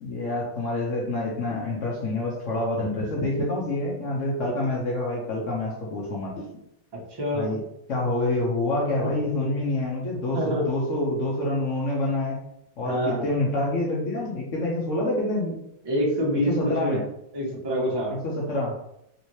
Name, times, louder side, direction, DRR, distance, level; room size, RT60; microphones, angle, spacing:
voice 1, 0.0-6.4 7.3-12.4 12.8-15.6 16.5-17.0 18.1-18.8, left 2 dB, 75° left, -3 dB, 0.7 m, -27 dB
sound 1, 1.3-1.9 2.8-3.5 4.6-4.9 6.4-6.7, equal, 90° left, 1.4 m, -37 dB
voice 2, 6.9-7.5 9.0-9.4 10.3-10.7 12.8-13.2 15.8-17.0 17.3-18.2, equal, 30° right, -4 dB, 0.4 m, -26 dB
3.2 x 2.8 x 3.0 m, 0.79 s
omnidirectional pair, 2.1 m